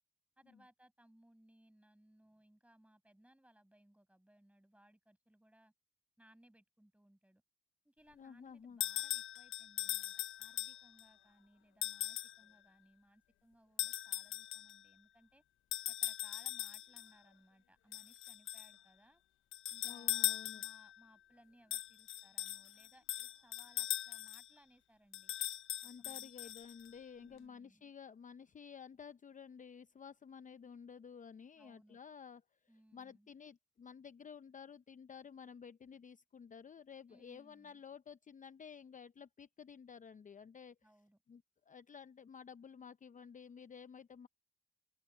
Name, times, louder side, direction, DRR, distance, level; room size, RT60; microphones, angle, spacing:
voice 1, 0.4-5.7 6.2-7.4 7.8-15.4 15.9-19.2 19.7-25.3 26.0-26.5 27.2-27.9 31.6-32.0 32.7-33.3 37.1-37.8 40.8-41.2, right 1 dB, 5° right, 7.2 m, -67 dB
voice 2, 8.1-8.8 19.8-20.6 25.8-32.6 32.9-40.8 41.3-44.3, left 6 dB, 40° left, 0.7 m, -53 dB
sound 1, 8.8-11.0 11.8-12.4 13.8-14.8 15.7-17.1 17.9-18.7 19.5-21.0 21.7-24.5 25.1-26.9, left 13 dB, 75° left, 0.6 m, -40 dB
open air
supercardioid pair, 60°, 20 cm